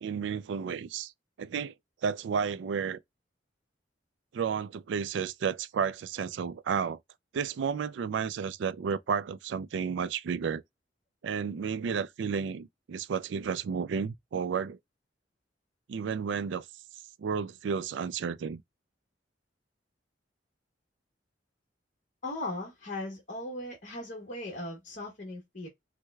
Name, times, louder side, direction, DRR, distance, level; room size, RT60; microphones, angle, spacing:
voice 1, 0.0-1.1 1.4-1.7 2.0-3.0 4.3-7.0 7.3-10.6 11.2-14.8 15.9-16.7 17.2-18.6, right 6 dB, 75° right, 0.3 m, -32 dB
voice 2, 22.2-25.7, left 2 dB, 45° left, 1.1 m, -38 dB
4.6 x 2.1 x 2.2 m
head